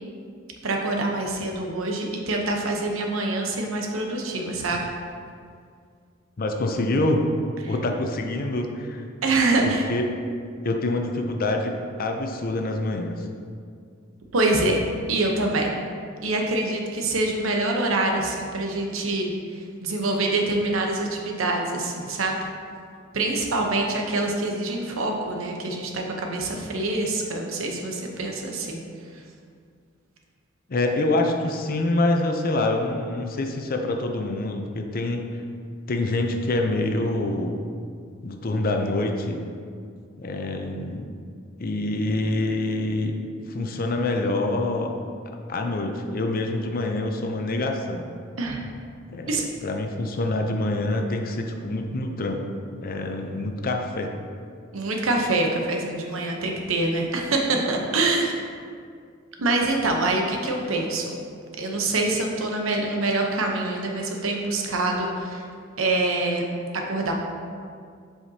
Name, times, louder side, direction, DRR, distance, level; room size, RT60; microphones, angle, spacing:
voice 1, 0.6-4.8 7.6-7.7 9.2-9.9 14.3-14.8 15.1-15.7 16.2-22.5 23.1-28.8 29.1-29.2 48.4-48.6 49.3-49.4 54.7-58.3 59.4-61.1 61.6-65.5 65.8-66.4 66.7-67.1, right 2 dB, 90° right, 1 dB, 0.8 m, -25 dB
voice 2, 6.4-7.2 7.7-9.0 9.6-10.0 10.6-13.3 30.7-35.3 35.9-37.7 38.2-39.4 40.2-41.1 41.6-43.2 43.5-45.0 45.5-48.1 49.1-52.4 52.8-54.1, left 2 dB, 45° left, 4 dB, 0.6 m, -26 dB
7.8 x 5.0 x 2.8 m, 2.2 s
head